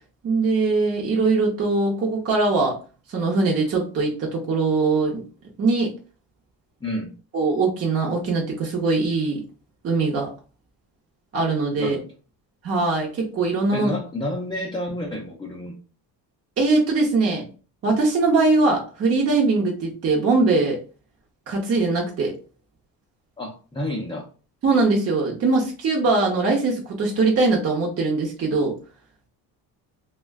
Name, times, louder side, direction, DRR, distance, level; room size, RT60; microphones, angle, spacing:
voice 1, 0.2-2.8 3.1-5.2 5.6-5.9 7.3-9.4 9.8-10.3 11.3-12.0 12.6-13.9 16.6-17.4 17.8-20.8 21.5-22.3 24.6-28.7, right 3 dB, 35° right, -1 dB, 0.7 m, -21 dB
voice 2, 11.8-12.1 13.7-15.7 23.4-24.3, left 1 dB, 10° left, -1 dB, 0.4 m, -30 dB
2.4 x 2.2 x 3.4 m, 0.36 s
cardioid pair, 125°, 42 cm